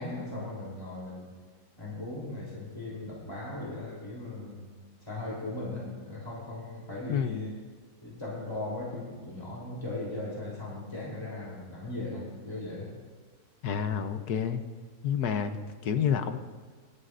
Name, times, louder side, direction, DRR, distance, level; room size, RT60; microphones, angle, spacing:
voice 1, 0.0-1.3 1.8-7.6 8.0-13.0, left 2 dB, 15° left, -5 dB, 3.6 m, -38 dB
voice 2, 7.1-7.4 13.6-14.6 15.0-16.4, left 7 dB, 85° left, 8 dB, 1.4 m, -29 dB
24.5 x 13.0 x 2.6 m, 1.5 s
omnidirectional pair, 1.6 m